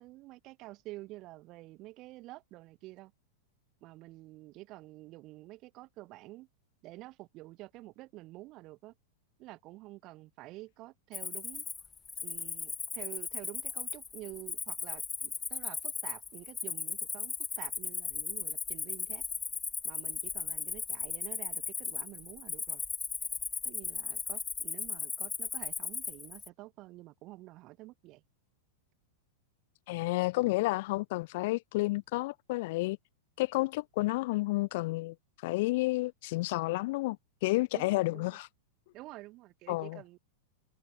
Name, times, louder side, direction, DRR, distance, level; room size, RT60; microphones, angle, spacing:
voice 1, 0.0-3.1 3.8-6.5 6.8-8.9 9.4-11.6 12.2-19.2 19.8-22.8 23.6-28.2 37.7-38.4 38.9-40.2, right 19 dB, 45° right, 5.8 m, -49 dB
Cricket, 11.1-26.5, left 5 dB, 15° left, 1.2 m, -37 dB
voice 2, 29.9-33.0 33.4-35.1 35.4-37.2 37.4-38.5 39.7-40.0, left 21 dB, 60° left, 0.6 m, -30 dB
hypercardioid pair, 105°, 0 cm